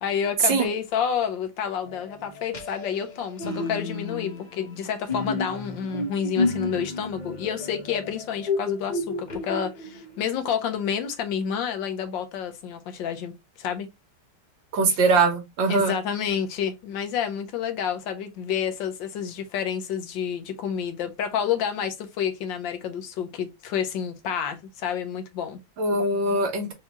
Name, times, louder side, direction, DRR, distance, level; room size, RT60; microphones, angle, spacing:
voice 1, 0.0-13.3 13.6-13.9 14.9-15.0 15.7-25.6, left 8 dB, 75° left, 1.4 m, -29 dB
sound 1, 1.9-10.2, left 3 dB, 40° left, 0.6 m, -31 dB
voice 2, 14.7-15.9 25.8-26.7, right 3 dB, 75° right, 1.8 m, -22 dB
4.7 x 2.7 x 2.9 m
omnidirectional pair, 2.1 m